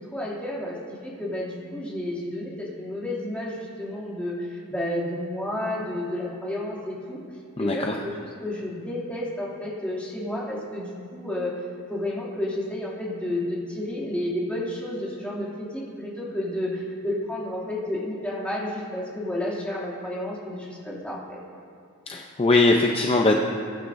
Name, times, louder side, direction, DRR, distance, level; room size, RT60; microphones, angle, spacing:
voice 1, 0.1-7.2 7.6-11.5 11.9-21.4, left 1 dB, 5° left, -7 dB, 2.6 m, -31 dB
voice 2, 7.6-8.0 22.1-23.4, left 2 dB, 25° left, 1 dB, 0.6 m, -21 dB
22.0 x 9.9 x 2.6 m, 2.5 s
head